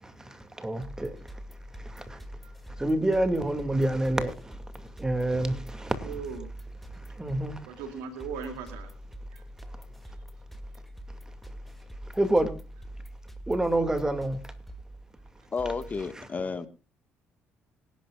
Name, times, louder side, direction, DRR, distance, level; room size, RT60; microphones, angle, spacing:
voice 1, 0.0-1.4 1.7-2.2 2.8-6.1 6.9-7.7 9.7-9.8 12.0-12.5 13.5-14.5 16.1-16.3, right 1 dB, 15° right, 2.4 m, -28 dB
sound 1, 0.8-16.0, right 1 dB, 5° left, 2.4 m, -44 dB
voice 2, 2.1-2.6 6.0-6.5 7.6-8.9 9.3-9.4 10.0-10.2 15.4-15.5, right 6 dB, 90° right, 2.9 m, -39 dB
voice 3, 15.5-16.7, left 4 dB, 35° left, 1.8 m, -31 dB
25.5 x 11.5 x 2.5 m
supercardioid pair, 75°, 5 cm